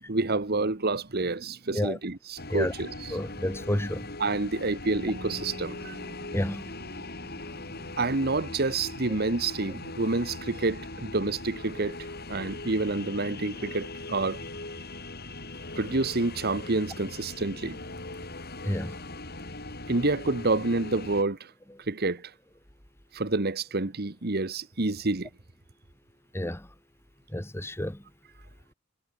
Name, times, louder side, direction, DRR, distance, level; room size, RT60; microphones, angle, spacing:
voice 1, 0.1-3.2 4.2-6.0 8.0-12.0 12.3-14.4 15.7-17.8 19.9-21.5 21.9-22.3 23.1-25.3, right 3 dB, 45° right, 1.3 m, -28 dB
sound 1, 2.4-21.2, left 2 dB, 45° left, 7.8 m, -40 dB
voice 2, 3.1-4.1 6.3-6.7 18.6-19.0 26.3-26.7 27.3-28.0, left 1 dB, 10° left, 1.4 m, -30 dB
Bass guitar, 4.9-11.2, equal, 30° right, 3.6 m, -49 dB
head